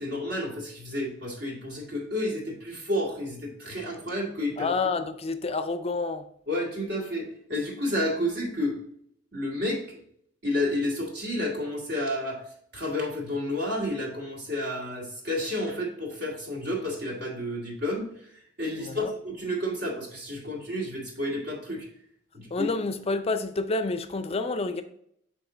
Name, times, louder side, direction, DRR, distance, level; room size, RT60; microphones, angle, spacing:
voice 1, 0.0-4.7 6.5-8.8 9.3-10.0 10.4-12.4 12.7-18.3 18.6-21.9 22.3-22.7, left 1 dB, 60° right, 2.2 m, -31 dB
voice 2, 4.6-6.2 18.8-19.1 22.5-24.8, left 3 dB, 30° left, 0.5 m, -29 dB
7.1 x 3.7 x 3.8 m
head